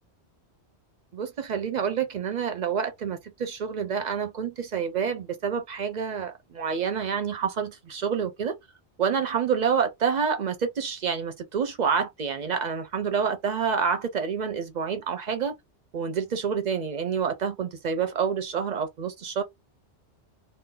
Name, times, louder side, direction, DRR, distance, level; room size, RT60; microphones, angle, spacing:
voice 1, 1.1-8.5 9.0-15.5 15.9-19.4, right 6 dB, 50° right, 0.6 m, -28 dB
2.5 x 2.0 x 3.7 m
omnidirectional pair, 1.2 m